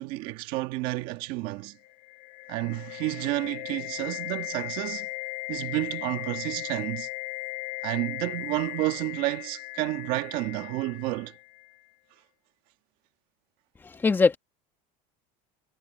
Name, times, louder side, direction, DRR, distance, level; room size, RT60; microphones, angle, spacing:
voice 1, 0.0-1.8 2.5-5.1 5.5-7.1 7.8-11.4, right 19 dB, 55° right, 1.5 m, -30 dB
sound 1, 1.8-11.7, left 26 dB, 70° left, 2.8 m, -37 dB
voice 2, 13.8-14.4, left 4 dB, 10° left, 1.4 m, -22 dB
cardioid pair, 170°, 18 cm